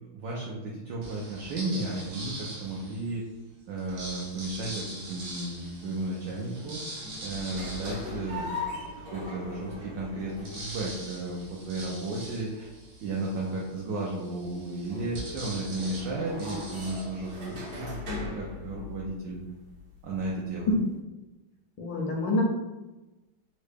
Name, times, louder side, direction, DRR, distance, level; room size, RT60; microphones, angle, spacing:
voice 1, 0.1-3.3 3.7-8.5 9.1-12.7 13.0-19.4 20.0-20.7, right 2 dB, 75° right, -3 dB, 1.1 m, -34 dB
sound 1, 1.0-3.2 3.8-8.9 9.4-9.5 9.8-17.8, right 1 dB, 90° right, 1.7 m, -43 dB
sound 2, 3.9-20.9, left 2 dB, 50° right, 1.3 m, -41 dB
voice 2, 21.8-22.4, left 1 dB, 75° left, -1 dB, 1.2 m, -26 dB
3.7 x 2.1 x 3.3 m, 1.1 s
omnidirectional pair, 2.3 m